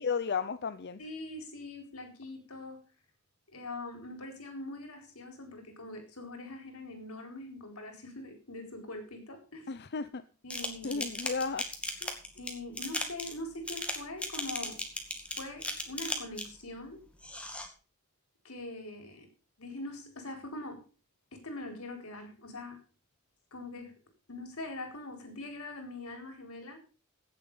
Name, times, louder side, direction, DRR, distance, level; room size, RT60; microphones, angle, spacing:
voice 1, 0.0-1.0 9.7-10.2 10.8-11.6 12.0-12.1, left 5 dB, 50° left, 11 dB, 0.6 m, -33 dB
voice 2, 1.0-2.8 3.5-9.7 10.4-11.0 12.4-14.8 15.4-17.0 18.4-19.3 19.6-20.8 21.3-22.8 23.5-23.9 24.3-26.8, left 2 dB, 85° left, 5 dB, 4.2 m, -43 dB
sound 1, 10.5-16.6 17.2-17.7, left 1 dB, 5° left, 2.1 m, -37 dB
16.5 x 7.6 x 5.5 m, 0.36 s
head